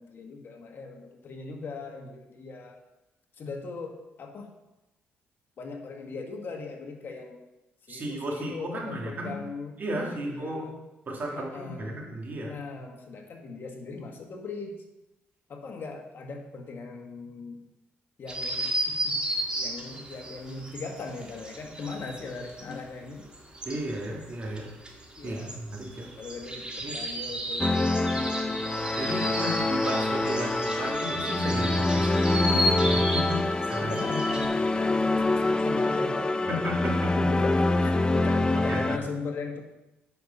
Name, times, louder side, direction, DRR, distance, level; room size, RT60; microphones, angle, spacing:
voice 1, 0.0-2.8 3.3-4.5 5.6-7.4 7.8-10.7 11.3-12.1 12.4-14.8 15.5-17.6 18.2-23.3 25.2-25.6 26.1-28.6 29.2-29.6 33.8-36.6 37.2-39.7, left 4 dB, 55° left, 2 dB, 1.7 m, -39 dB
voice 2, 7.9-9.4 9.8-10.8 11.1-12.5 23.6-24.7 25.2-26.1 26.8-27.0 29.0-33.4 33.6-34.0 36.5-37.1 38.6-39.1, right 1 dB, 45° right, -2 dB, 2.8 m, -34 dB
sound 1, 18.3-22.8 23.1-34.5, equal, 20° right, 2.0 m, -33 dB
sound 2, 27.6-39.0, left 2 dB, 20° left, 0.5 m, -26 dB
9.2 x 5.6 x 5.7 m, 0.98 s
cardioid pair, 80°, 4 cm